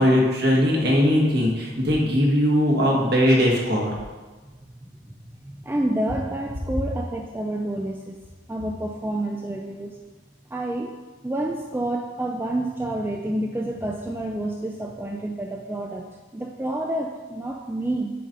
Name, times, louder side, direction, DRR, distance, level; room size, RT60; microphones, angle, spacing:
voice 1, 0.0-3.9, equal, 55° right, -2 dB, 1.5 m, -19 dB
voice 2, 4.4-5.0 5.4-8.2 8.5-10.0 10.5-11.0 11.2-16.1 16.3-18.1, right 1 dB, 10° right, 1 dB, 0.3 m, -29 dB
7.5 x 4.1 x 5.2 m, 1.3 s
head